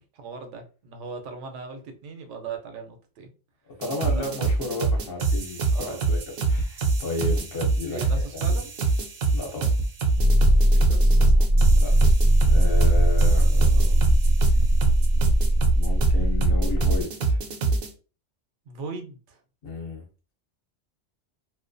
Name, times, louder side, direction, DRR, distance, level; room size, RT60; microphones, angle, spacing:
voice 1, 0.1-3.3 4.2-4.3 5.7-6.1 7.9-8.7 10.7-11.5 11.7-12.0 12.8-12.9 18.7-19.4, right 4 dB, 80° right, 5 dB, 0.9 m, -39 dB
voice 2, 3.7-6.2 6.5-8.5 9.3-9.7 11.8-12.1 12.4-14.1 15.7-17.4 19.6-20.0, left 2 dB, 55° left, 1 dB, 0.8 m, -33 dB
sound 1, 3.8-17.9, right 3 dB, 60° right, 0.7 m, -25 dB
sound 2, 10.2-17.0, equal, 75° left, 0.3 m, -19 dB
2.3 x 2.2 x 2.5 m, 0.35 s
omnidirectional pair, 1.2 m